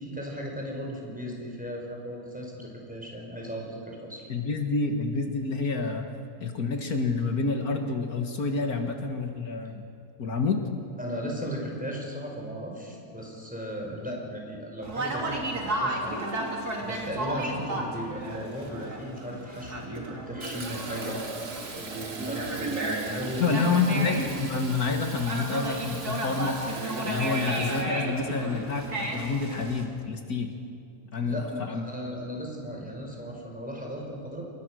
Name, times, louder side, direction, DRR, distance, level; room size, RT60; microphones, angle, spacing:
voice 1, 0.0-4.3 8.8-8.9 11.0-16.2 16.8-21.2 21.7-24.1 31.2-34.4, equal, 5° right, -1 dB, 5.6 m, -36 dB
voice 2, 4.3-6.1 6.4-9.8 10.2-10.6 23.4-26.6 27.0-30.5 31.1-31.8, left 4 dB, 75° left, 4 dB, 2.2 m, -28 dB
Conversation, 14.8-29.8, right 2 dB, 85° right, 3.5 m, -33 dB
Fill (with liquid), 20.4-27.8, right 3 dB, 45° right, 2.0 m, -41 dB
28.5 x 22.5 x 6.4 m, 2.4 s
omnidirectional pair, 1.6 m